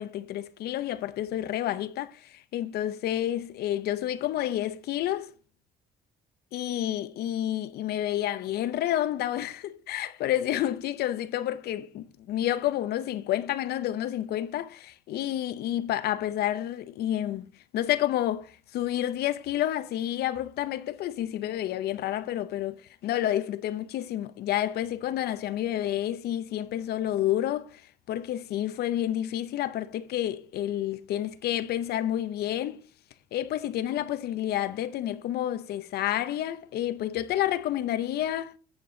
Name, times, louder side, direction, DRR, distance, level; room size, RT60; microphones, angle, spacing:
voice 1, 0.0-5.3 6.5-17.5 17.7-27.8 28.1-32.8 33.3-38.5, left 12 dB, 70° left, 0.7 m, -29 dB
9.0 x 6.8 x 3.9 m
cardioid pair, 110°, 17 cm